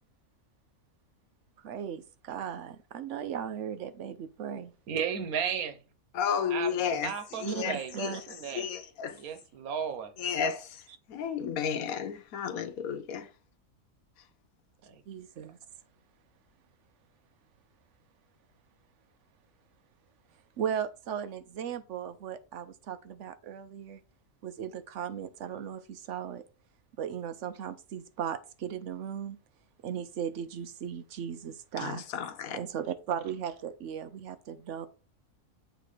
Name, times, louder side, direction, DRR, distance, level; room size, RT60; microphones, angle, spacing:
voice 1, 1.6-4.7 7.4-8.2 15.1-15.6 20.6-24.0 24.4-26.4 27.0-29.4 29.8-32.0 32.5-34.9, right 8 dB, 65° right, 0.9 m, -37 dB
voice 2, 4.9-5.8 6.5-8.7 9.2-10.1 14.9-15.0, right 7 dB, 90° right, 1.3 m, -34 dB
voice 3, 6.1-8.2 8.5-9.2 10.2-13.3 31.8-32.6, left 7 dB, 80° left, 1.2 m, -33 dB
7.9 x 3.0 x 4.9 m
omnidirectional pair, 1.5 m